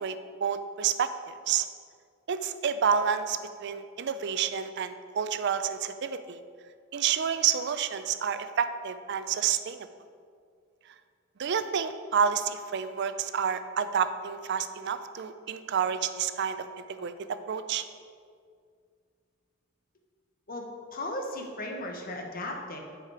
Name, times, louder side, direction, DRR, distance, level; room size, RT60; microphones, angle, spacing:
voice 1, 0.0-1.7 2.3-6.4 6.9-9.9 11.4-16.6 16.9-17.8, right 7 dB, 60° right, 11 dB, 0.4 m, -29 dB
voice 2, 20.5-22.8, left 1 dB, 45° left, 2 dB, 1.1 m, -36 dB
9.6 x 4.9 x 4.8 m, 2.1 s
head